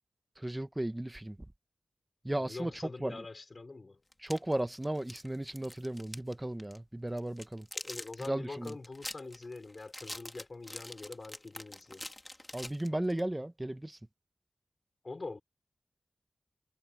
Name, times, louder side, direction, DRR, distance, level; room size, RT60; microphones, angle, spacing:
voice 1, 0.4-1.4 2.2-2.7 3.0-3.2 4.2-7.7 8.3-8.7 12.5-14.0, right 1 dB, 15° right, 1.3 m, -35 dB
voice 2, 2.3-4.0 7.7-12.1 15.0-15.4, left 3 dB, 50° left, 5.0 m, -44 dB
sound 1, 4.1-6.3 6.6-6.8 7.2-13.3, left 1 dB, 20° left, 2.3 m, -45 dB
cardioid pair, 60°, 0 cm